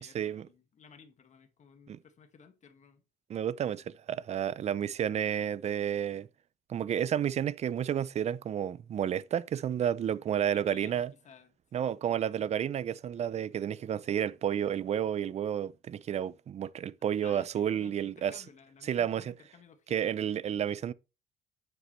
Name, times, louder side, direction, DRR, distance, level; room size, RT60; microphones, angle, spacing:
voice 1, 0.0-3.0 10.4-12.5 17.2-20.4, left 6 dB, 45° left, 1.8 m, -56 dB
voice 2, 3.3-6.3 6.7-11.1 11.7-18.3 18.9-19.3 19.9-20.9, right 9 dB, 40° right, 0.5 m, -31 dB
9.2 x 7.5 x 3.2 m
cardioid pair, 110°, 17 cm